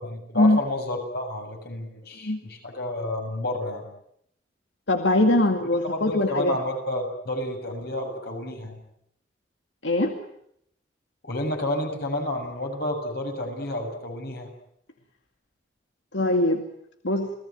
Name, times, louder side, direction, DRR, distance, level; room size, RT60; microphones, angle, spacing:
voice 1, 0.0-3.9 5.4-5.5 5.7-8.8 11.2-14.5, left 1 dB, 60° left, 4 dB, 7.2 m, -30 dB
voice 2, 4.9-6.6 9.8-10.1 16.1-16.6 17.0-17.3, left 1 dB, 90° left, 4 dB, 2.4 m, -21 dB
29.5 x 18.5 x 9.4 m, 0.73 s
head